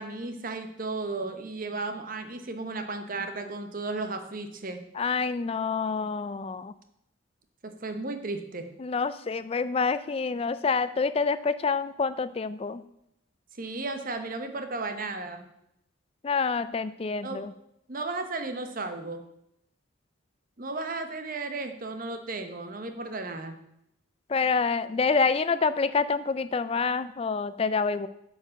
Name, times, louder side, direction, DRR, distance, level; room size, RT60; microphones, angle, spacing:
voice 1, 0.0-4.8 7.6-8.7 13.6-15.5 17.2-17.5 17.9-19.2 20.6-23.6, right 3 dB, 40° right, 7 dB, 0.9 m, -34 dB
voice 2, 5.0-6.7 8.8-12.8 16.2-17.5 24.3-28.1, left 4 dB, 30° left, 14 dB, 0.3 m, -27 dB
8.6 x 5.0 x 6.4 m, 0.78 s
head